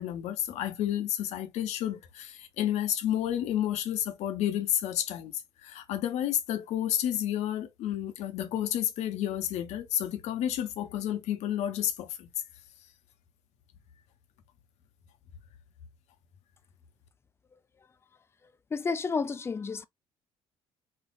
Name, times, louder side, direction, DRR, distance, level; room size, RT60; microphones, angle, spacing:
voice 1, 0.0-12.3, left 11 dB, 55° left, 0.7 m, -31 dB
voice 2, 18.7-19.8, left 4 dB, 20° left, 0.4 m, -31 dB
4.5 x 2.3 x 2.3 m
figure-of-eight pair, 55°, 13 cm